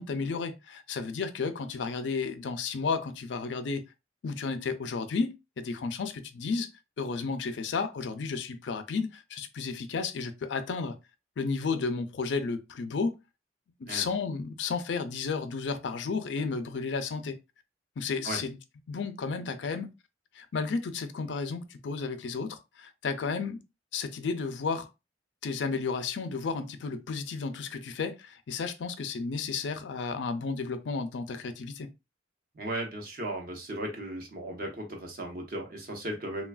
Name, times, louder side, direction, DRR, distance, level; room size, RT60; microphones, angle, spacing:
voice 1, 0.0-3.8 4.2-6.7 7.0-11.0 11.4-13.2 13.8-17.4 18.0-18.6 18.9-19.9 20.3-23.6 23.9-24.9 25.4-31.9, left 4 dB, 75° left, 0.4 m, -32 dB
voice 2, 32.5-36.5, right 1 dB, 50° right, 0.8 m, -36 dB
3.2 x 2.3 x 2.2 m
head